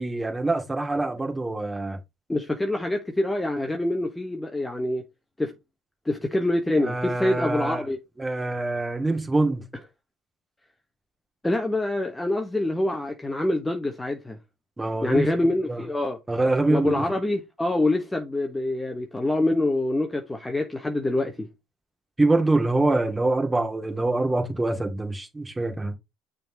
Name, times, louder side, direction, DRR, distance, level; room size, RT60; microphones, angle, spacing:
voice 1, 0.0-2.0 6.9-7.8 8.2-9.7 14.8-15.2 15.7-15.8 16.3-17.0 22.2-25.9, right 2 dB, 15° right, 2.4 m, -24 dB
voice 2, 2.3-5.0 5.4-5.5 6.0-8.0 11.4-14.4 15.0-16.2 16.7-21.5, left 1 dB, 10° left, 1.1 m, -25 dB
6.7 x 4.0 x 4.7 m
supercardioid pair, 85°, 0 cm